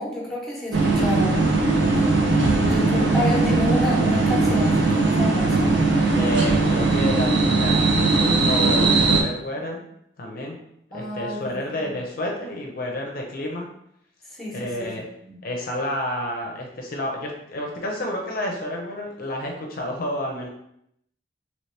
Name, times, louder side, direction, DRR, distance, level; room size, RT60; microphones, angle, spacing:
voice 1, 0.0-1.5 2.6-5.8 10.9-11.9 14.4-14.9 15.2-15.3, left 1 dB, ahead, -5 dB, 0.9 m, -30 dB
sound 1, 0.7-9.2, right 3 dB, 75° right, 0.6 m, -19 dB
voice 2, 6.2-9.8 10.2-10.6 10.9-13.7 14.5-15.1 15.4-20.5, left 1 dB, 55° left, 0 dB, 0.6 m, -30 dB
3.0 x 2.8 x 3.2 m, 0.75 s
head